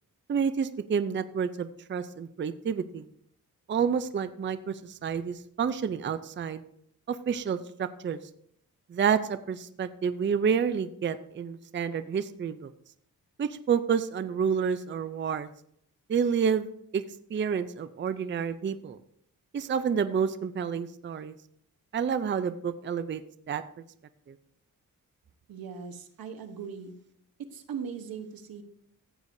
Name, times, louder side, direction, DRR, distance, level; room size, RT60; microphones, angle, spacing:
voice 1, 0.3-3.0 3.7-6.6 7.1-8.2 8.9-12.7 13.4-15.5 16.1-16.7 16.9-17.0 17.3-19.0 19.5-21.3 21.9-23.2 23.5-23.6, right 7 dB, 35° right, 12 dB, 0.5 m, -29 dB
voice 2, 25.5-26.9 27.5-28.6, right 6 dB, 90° right, 8 dB, 1.1 m, -39 dB
14.5 x 8.2 x 2.6 m, 0.70 s
wide cardioid pair, 115°, 34 cm